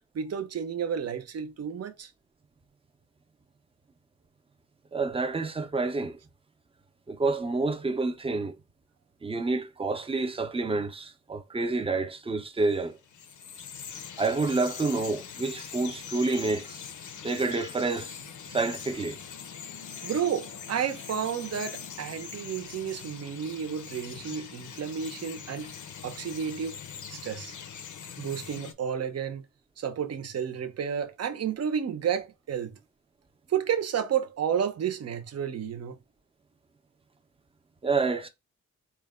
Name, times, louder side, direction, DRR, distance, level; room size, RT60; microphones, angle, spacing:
voice 1, 0.1-2.1 20.0-25.7 26.0-26.8 27.1-27.5 28.2-29.4 29.8-32.7 33.5-36.0, right 8 dB, 60° right, 0.6 m, -31 dB
voice 2, 4.9-6.2 7.1-8.5 9.2-13.0 14.2-16.8 17.2-18.2 18.5-19.2 37.8-38.3, right 3 dB, 20° right, 0.5 m, -28 dB
Bird vocalization bird call bird song, 12.6-28.7, left 7 dB, 90° left, 0.6 m, -42 dB
4.5 x 2.2 x 3.4 m
wide cardioid pair, 170°, 29 cm